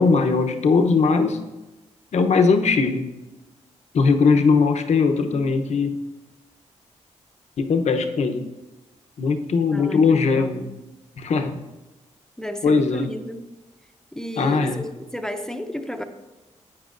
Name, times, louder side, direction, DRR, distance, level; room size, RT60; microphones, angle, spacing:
voice 1, 0.0-1.4 2.1-3.1 3.9-6.0 7.6-8.5 9.2-10.7 11.2-11.6 12.6-13.1 14.4-14.8, left 4 dB, 65° left, 6 dB, 0.8 m, -19 dB
voice 2, 9.7-10.6 12.4-13.6 14.1-16.0, equal, 5° left, 7 dB, 0.6 m, -32 dB
14.5 x 8.7 x 2.5 m, 1.1 s
wide cardioid pair, 120°, 13 cm